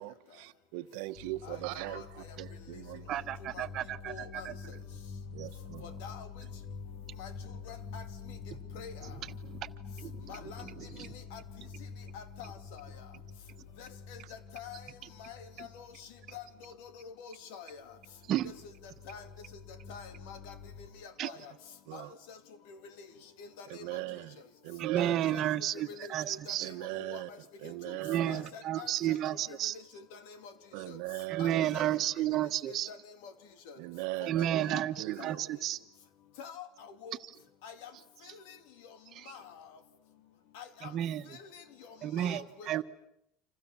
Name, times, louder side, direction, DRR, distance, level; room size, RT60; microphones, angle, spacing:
voice 1, 0.0-3.1 5.3-6.0 21.9-22.1 23.7-25.2 26.6-27.3 27.6-28.5 30.7-32.2 33.8-35.4, right 18 dB, 80° right, 1.2 m, -40 dB
sound 1, 1.1-17.1 17.8-20.9, left 5 dB, 60° left, 3.3 m, -47 dB
voice 2, 3.1-4.5 9.4-9.7 10.0-10.1 10.8-11.1 18.3-18.5 21.2-21.3 24.8-26.7 28.0-29.7 31.3-32.9 34.3-35.8 39.1-39.3 40.8-41.3 42.0-42.8, right 12 dB, 45° right, 1.4 m, -32 dB
voice 3, 4.1-4.5 5.8-6.3 7.2-7.3 7.7-8.0 8.7-8.9 10.3-10.6 11.3-11.4 12.1-12.9 14.5-14.8 15.2-15.7 16.3-16.4 17.0-17.7 18.4-18.5 19.1-19.2 19.9-20.5 21.0-21.4 21.9-22.4 22.7-23.1 23.4-23.8 25.0-25.4 26.3-26.7 27.0-27.2 27.6-27.7 28.3-28.9 30.1-30.4 31.4-31.8 32.7-33.0 33.2-33.3 34.7-34.8 36.4-36.6 37.0-37.1 37.6-37.9 39.3-39.4 40.5-40.9 42.2-42.8, left 7 dB, 85° left, 2.8 m, -46 dB
29.5 x 27.0 x 7.3 m
cardioid pair, 140°, 0 cm